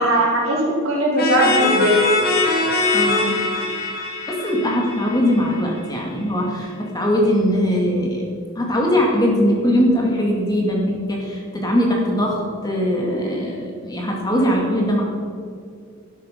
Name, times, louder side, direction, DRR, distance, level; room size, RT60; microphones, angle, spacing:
voice 1, 0.0-2.1, equal, 65° right, -2 dB, 3.8 m, -19 dB
sound 1, 1.2-5.8, left 2 dB, 40° left, 2.7 m, -22 dB
voice 2, 2.9-3.4 4.3-8.2 8.6-15.1, equal, 15° left, -1 dB, 2.2 m, -20 dB
12.0 x 12.0 x 5.2 m, 2.3 s
head